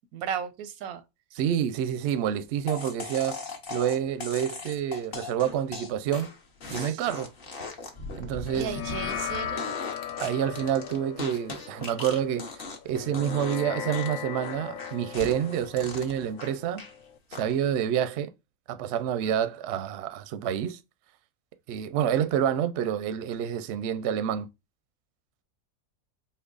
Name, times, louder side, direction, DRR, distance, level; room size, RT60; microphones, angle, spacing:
voice 1, 0.1-1.0 6.7-7.1 8.5-9.8, right 8 dB, 90° right, 1.1 m, -35 dB
voice 2, 1.4-3.4 3.7-6.3 6.7-7.3 8.2-8.7 10.2-12.5 12.8-16.8 17.3-18.3 18.7-20.8 21.7-24.5, right 9 dB, 65° right, 0.7 m, -28 dB
sound 1, 2.7-12.9 13.1-13.6 13.9-16.9 17.3-17.8, left 3 dB, 45° left, 1.0 m, -39 dB
sound 2, 8.5-17.2, left 9 dB, 75° left, 1.0 m, -38 dB
4.5 x 2.9 x 2.4 m
omnidirectional pair, 1.5 m